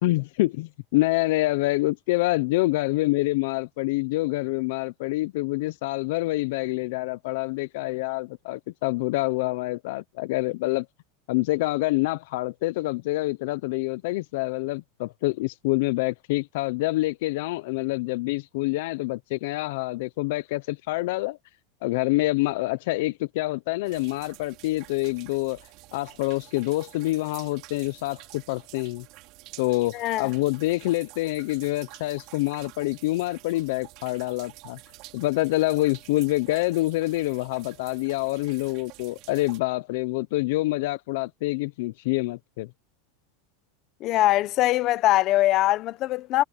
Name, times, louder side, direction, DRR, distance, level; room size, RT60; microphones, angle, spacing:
voice 1, 0.0-10.9 11.3-21.4 21.8-29.1 29.6-34.8 35.1-42.7, left 20 dB, 55° left, 0.5 m, -26 dB
sound 1, 23.8-39.6, right 20 dB, 40° right, 4.1 m, -49 dB
voice 2, 29.9-30.3 44.0-46.4, left 15 dB, 30° left, 0.8 m, -22 dB
supercardioid pair, 175°, 0 cm